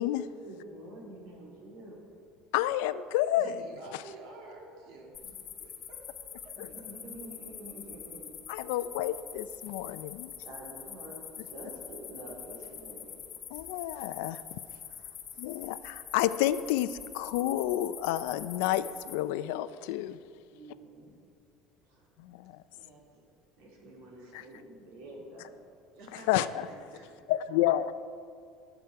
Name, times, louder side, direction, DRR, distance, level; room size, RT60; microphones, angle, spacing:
voice 1, 0.4-2.0 6.5-8.3 10.4-13.2 20.5-21.1 21.9-22.1 22.7-22.8 23.6-25.6, right 1 dB, 80° right, -3 dB, 4.0 m, -47 dB
voice 2, 2.5-3.5 8.5-10.3 13.5-14.6 15.4-20.2 22.2-22.6 26.3-26.7 27.3-27.9, left 13 dB, 85° left, 14 dB, 0.5 m, -30 dB
voice 3, 3.4-6.8 22.7-23.3 25.9-27.2, right 3 dB, 55° right, 0 dB, 2.6 m, -51 dB
sound 1, 5.1-19.2, left 8 dB, 30° left, 1.1 m, -45 dB
21.5 x 8.1 x 4.7 m, 2.4 s
cardioid pair, 175°, 0 cm